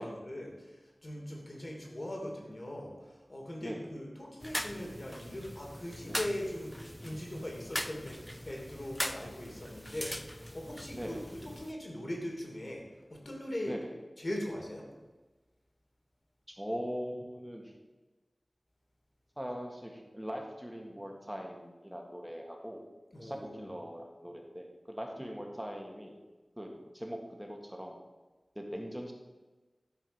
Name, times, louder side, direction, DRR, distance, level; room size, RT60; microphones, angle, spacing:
voice 1, 0.0-12.8 13.1-13.8 14.2-14.9 23.1-23.7, left 1 dB, 50° left, 0 dB, 2.9 m, -40 dB
sound 1, 4.4-11.7, equal, 10° left, 0.6 m, -41 dB
voice 2, 10.9-11.2 13.7-13.9 16.5-17.8 19.4-22.9 23.2-26.1 26.6-28.0 28.6-29.1, equal, 5° right, 1 dB, 1.9 m, -41 dB
12.0 x 5.0 x 7.2 m, 1.2 s
wide cardioid pair, 55°, 0 cm